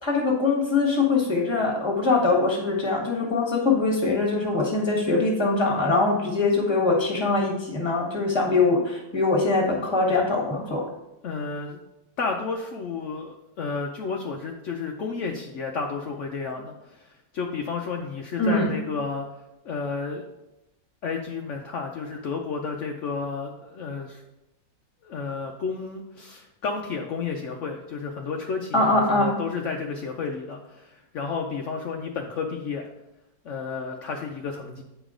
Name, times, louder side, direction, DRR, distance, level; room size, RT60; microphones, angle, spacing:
voice 1, 0.0-10.8 18.4-18.7 28.7-29.3, left 3 dB, 15° left, -1 dB, 1.3 m, -22 dB
voice 2, 11.2-11.8 12.2-19.3 19.6-20.2 21.0-24.2 25.0-32.9 33.4-34.8, left 5 dB, 70° left, 1 dB, 0.7 m, -31 dB
8.7 x 5.0 x 3.7 m, 0.92 s
omnidirectional pair, 2.0 m